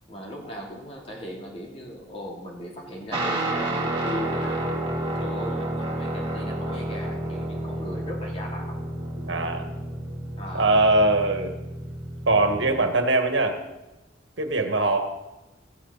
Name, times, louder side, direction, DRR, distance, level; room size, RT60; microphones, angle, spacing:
voice 1, 0.1-4.9 5.1-8.8 10.4-10.7, equal, 30° left, -2 dB, 3.2 m, -38 dB
Guitar, 3.1-12.9, right 1 dB, 25° right, 2.6 m, -30 dB
voice 2, 9.3-9.7 10.5-11.6 12.3-13.6 14.4-15.1, right 2 dB, 75° right, 5 dB, 1.7 m, -21 dB
15.5 x 15.0 x 4.1 m, 1.0 s
head